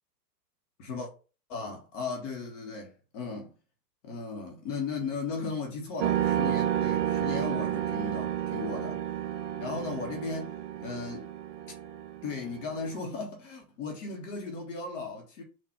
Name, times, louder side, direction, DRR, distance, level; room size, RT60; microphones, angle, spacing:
voice 1, 0.8-1.1 1.5-3.5 4.0-9.0 9.6-11.3 12.2-15.4, left 4 dB, 50° left, 1.1 m, -36 dB
sound 1, 6.0-13.0, right 11 dB, 50° right, 0.5 m, -31 dB
3.8 x 2.5 x 4.4 m
hypercardioid pair, 120°, 50 cm